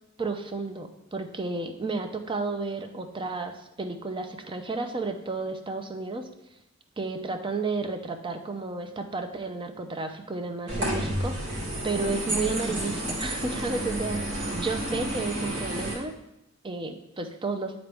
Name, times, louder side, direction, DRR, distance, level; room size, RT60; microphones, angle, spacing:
voice 1, 0.2-6.3 7.0-11.5 11.8-14.2 14.6-16.1 16.6-17.7, right 3 dB, 25° right, 6 dB, 0.5 m, -32 dB
sound 1, 10.7-16.0, right 1 dB, 60° right, 2.3 m, -31 dB
10.0 x 3.9 x 3.4 m, 0.87 s
head